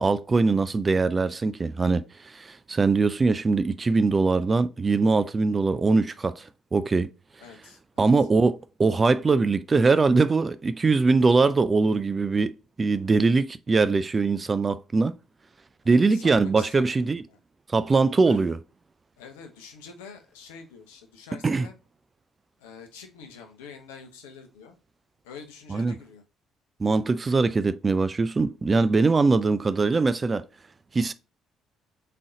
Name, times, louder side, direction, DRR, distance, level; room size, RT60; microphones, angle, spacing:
voice 1, 0.0-7.1 8.0-12.5 12.8-15.1 15.9-17.2 17.7-18.6 21.4-21.7 25.7-26.0 26.8-30.4 30.9-31.1, right 4 dB, 30° right, 0.4 m, -22 dB
voice 2, 7.4-8.1 15.8-17.4 18.2-18.4 19.2-21.7 22.6-24.7 25.2-26.2, left 6 dB, 75° left, 0.7 m, -46 dB
3.7 x 3.3 x 3.9 m
figure-of-eight pair, 45°, 0 cm